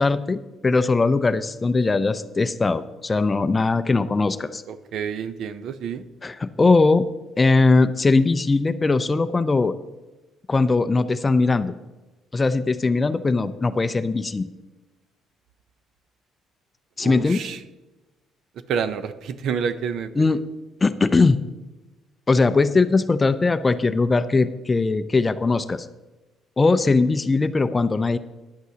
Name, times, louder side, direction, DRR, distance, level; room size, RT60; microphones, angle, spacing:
voice 1, 0.0-4.6 6.2-7.1 7.4-9.7 10.5-11.7 12.3-14.5 17.0-17.4 20.2-20.4 20.8-21.4 22.3-25.9 26.6-28.2, left 3 dB, 20° left, 12 dB, 0.4 m, -20 dB
voice 2, 4.7-6.0 17.0-17.6 18.7-20.4, right 7 dB, 60° right, 11 dB, 0.7 m, -29 dB
14.5 x 10.5 x 2.8 m, 1.1 s
cardioid pair, 145°, 0 cm